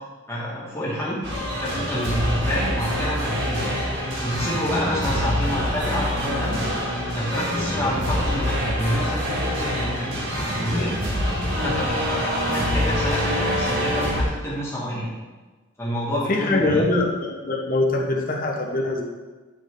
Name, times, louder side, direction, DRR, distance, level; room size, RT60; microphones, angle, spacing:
voice 1, 0.3-1.2 1.6-3.6 4.2-6.6 7.1-10.9 11.6-15.1 15.8-16.8, equal, 15° left, -7 dB, 2.2 m, -28 dB
sound 1, 1.2-14.2, equal, 50° right, 2.5 m, -25 dB
voice 2, 16.1-19.0, left 2 dB, 40° left, 0 dB, 1.3 m, -23 dB
11.5 x 4.6 x 3.9 m, 1.3 s
head